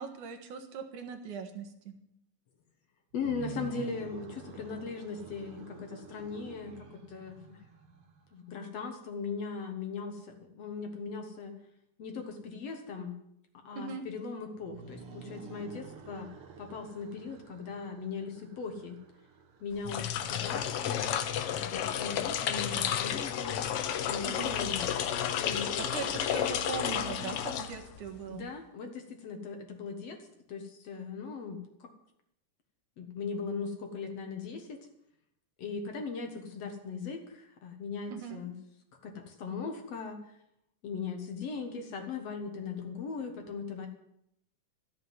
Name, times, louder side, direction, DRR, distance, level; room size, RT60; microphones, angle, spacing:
voice 1, 0.0-1.9 13.7-14.0 24.2-24.6 25.9-28.5 38.1-38.4, right 6 dB, 65° right, 5 dB, 3.0 m, -40 dB
voice 2, 3.1-6.7 7.1-7.6 8.3-10.2 10.6-11.5 12.0-13.1 13.7-16.3 16.6-19.0 19.6-20.0 20.3-21.1 21.5-23.7 24.1-25.0 25.4-25.9 28.3-30.2 30.5-31.6 33.0-34.8 35.6-38.6 39.0-40.2 40.8-43.9, left 5 dB, 55° left, 5 dB, 2.2 m, -39 dB
sound 1, 3.1-8.3 14.5-20.2, right 5 dB, 50° right, 1.9 m, -49 dB
sound 2, 19.7-28.2, left 9 dB, 80° left, 1.3 m, -32 dB
13.5 x 7.5 x 9.5 m, 0.77 s
omnidirectional pair, 3.9 m